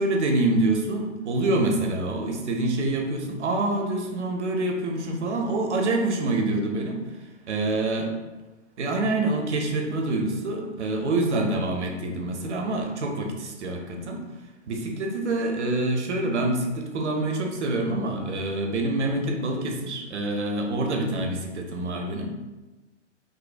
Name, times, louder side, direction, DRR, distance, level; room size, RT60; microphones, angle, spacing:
voice 1, 0.0-7.0 7.5-8.1 8.8-14.2 14.7-22.3, right 2 dB, 70° right, 2 dB, 0.6 m, -26 dB
2.7 x 2.0 x 2.5 m, 1.1 s
figure-of-eight pair, 125°, 36 cm